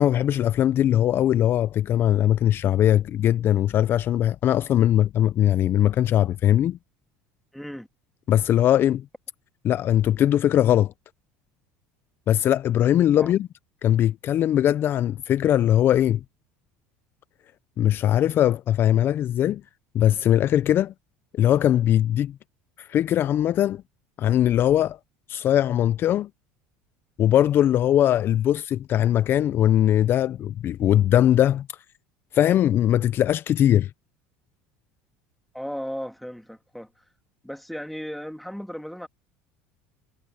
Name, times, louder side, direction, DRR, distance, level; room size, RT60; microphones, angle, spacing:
voice 1, 0.0-6.8 8.3-9.1 9.6-10.9 12.3-13.5 13.8-16.2 17.8-19.6 19.9-20.9 21.3-22.4 22.8-23.8 24.2-25.0 25.3-26.3 27.2-31.7 32.3-33.9, left 11 dB, 40° left, 0.4 m, -20 dB
voice 2, 7.5-7.9 13.2-13.3 35.5-36.9 37.4-39.1, equal, ahead, 2.1 m, -35 dB
supercardioid pair, 120°, 6 cm